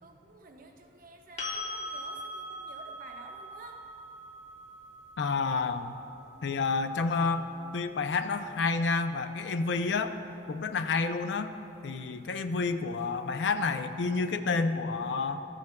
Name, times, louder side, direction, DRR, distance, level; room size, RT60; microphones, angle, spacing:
voice 1, 0.0-3.8, right 3 dB, 50° right, 2 dB, 0.8 m, -51 dB
sound 1, 1.4-9.2 12.0-12.1, left 1 dB, 40° left, 1.0 m, -42 dB
voice 2, 5.2-6.0 6.4-7.5 7.7-10.2 10.5-11.5 11.8-15.4, left 4 dB, 70° left, 10 dB, 0.4 m, -29 dB
13.0 x 9.4 x 2.2 m, 2.8 s
head